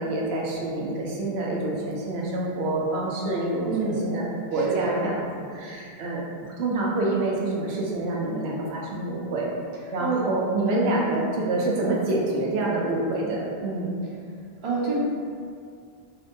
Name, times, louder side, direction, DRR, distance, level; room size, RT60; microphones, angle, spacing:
voice 1, 0.0-5.2 5.5-6.2 6.6-9.4 9.9-13.9, right 2 dB, 85° right, -3 dB, 0.8 m, -27 dB
voice 2, 3.7-4.1 4.5-5.0 10.0-10.2 10.6-10.8 14.6-15.0, right 3 dB, 55° right, -4 dB, 0.3 m, -27 dB
2.6 x 2.1 x 2.6 m, 2.2 s
omnidirectional pair, 1.1 m